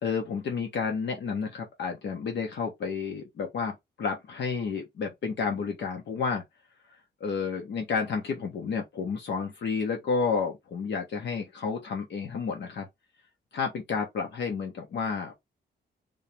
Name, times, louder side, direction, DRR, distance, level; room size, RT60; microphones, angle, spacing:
voice 1, 0.0-6.4 7.2-12.9 13.5-15.3, left 5 dB, 75° left, 1.3 m, -31 dB
3.8 x 2.9 x 3.5 m
wide cardioid pair, 160°, 18 cm